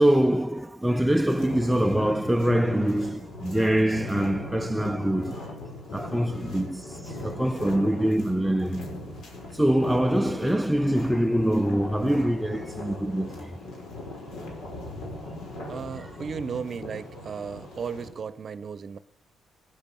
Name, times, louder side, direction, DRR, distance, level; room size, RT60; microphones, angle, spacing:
voice 1, 0.0-5.4 5.9-6.8 7.2-9.0 9.6-13.5, right 1 dB, 5° right, 0.5 m, -24 dB
sound 1, 1.3-18.1, left 1 dB, 75° left, 4.6 m, -39 dB
voice 2, 15.7-19.0, right 6 dB, 45° right, 0.8 m, -35 dB
16.0 x 9.8 x 7.0 m
cardioid pair, 90°, 0 cm